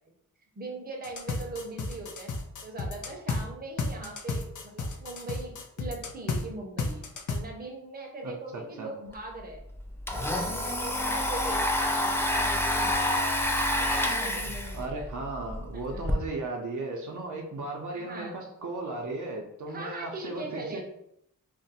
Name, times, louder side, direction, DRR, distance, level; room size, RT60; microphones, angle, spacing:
voice 1, 0.6-9.6 10.1-13.3 13.8-15.0 15.7-16.2 17.9-18.4 19.7-20.8, right 2 dB, 30° right, 0 dB, 0.7 m, -41 dB
sound 1, 1.0-3.4 3.8-6.4 6.8-7.4, left 3 dB, 65° left, 0.5 m, -32 dB
voice 2, 8.2-8.9 14.7-20.8, right 2 dB, 65° right, 1 dB, 0.6 m, -36 dB
Domestic sounds home sounds, 9.1-9.2 9.5-16.1, left 1 dB, 10° left, 0.4 m, -28 dB
2.5 x 2.1 x 4.0 m, 0.74 s
wide cardioid pair, 95°, 32 cm